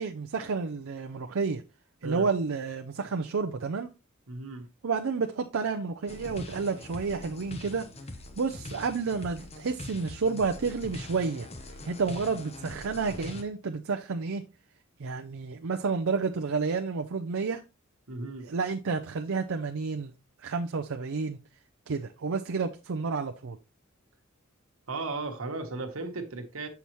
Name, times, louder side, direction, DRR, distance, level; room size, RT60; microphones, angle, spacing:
voice 1, 0.0-1.6 2.0-3.9 4.8-7.9 8.4-11.5 11.8-14.4 15.0-17.6 18.4-20.1 20.4-21.4 21.9-23.6, right 4 dB, 75° right, 0.5 m, -30 dB
voice 2, 4.3-4.7 18.1-18.5 24.9-26.7, right 3 dB, 90° right, 1.3 m, -35 dB
sound 1, 6.1-13.4, left 2 dB, 30° left, 0.8 m, -43 dB
6.9 x 5.8 x 3.0 m
head